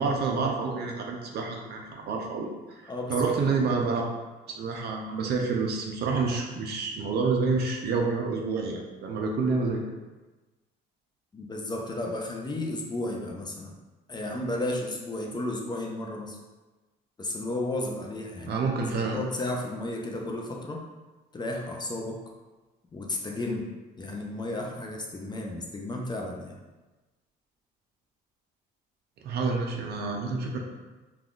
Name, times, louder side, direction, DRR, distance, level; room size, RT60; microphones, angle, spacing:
voice 1, 0.0-2.5 2.8-4.1 4.5-9.8 18.5-19.2 29.2-30.6, right 4 dB, 60° right, 1 dB, 0.5 m, -28 dB
voice 2, 11.3-13.7 14.1-16.4 17.2-20.8 21.3-22.2 22.9-23.7 24.0-26.5, left 1 dB, 20° left, 0 dB, 0.5 m, -33 dB
3.5 x 2.4 x 2.3 m, 1.2 s
cardioid pair, 90°, 19 cm